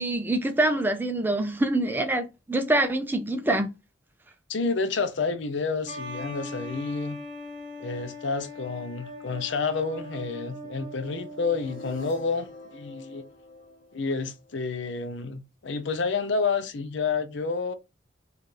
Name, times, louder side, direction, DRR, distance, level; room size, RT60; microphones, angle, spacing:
voice 1, 0.0-3.7, right 1 dB, 10° right, 0.4 m, -25 dB
voice 2, 4.5-7.2 7.8-13.2 13.9-17.7, left 4 dB, 65° left, 0.6 m, -29 dB
sound 1, 5.9-12.2, left 1 dB, 25° right, 1.2 m, -40 dB
sound 2, 10.9-15.0, equal, 40° left, 1.2 m, -45 dB
4.6 x 2.4 x 3.2 m
head